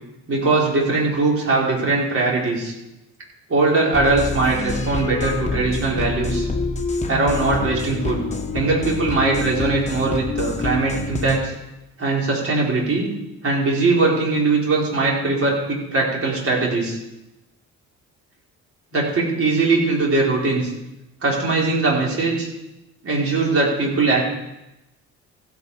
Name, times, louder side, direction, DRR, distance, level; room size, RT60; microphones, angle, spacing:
voice 1, 0.3-2.7 3.5-6.5 7.1-8.2 8.5-11.5 12.0-13.1 13.4-17.0 18.9-20.7 21.2-22.5 23.0-24.2, right 3 dB, 50° right, -3 dB, 4.3 m, -20 dB
sound 1, 3.9-11.4, left 3 dB, 25° left, 1.5 m, -27 dB
15.5 x 8.7 x 4.8 m, 0.92 s
cardioid pair, 90°, 30 cm